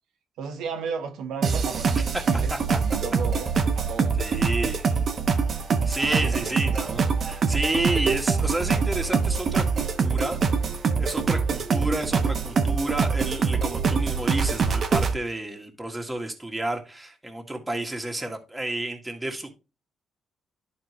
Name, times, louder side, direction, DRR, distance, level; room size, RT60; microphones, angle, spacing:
voice 1, 0.4-4.2 6.2-7.0, right 6 dB, 85° right, 1.2 m, -35 dB
sound 1, 1.4-15.1, right 5 dB, 50° right, 1.0 m, -24 dB
voice 2, 2.1-2.8 4.2-4.9 5.9-10.4 11.0-19.5, right 1 dB, 10° right, 1.8 m, -31 dB
11.5 x 4.4 x 3.1 m
cardioid pair, 90°, 0 cm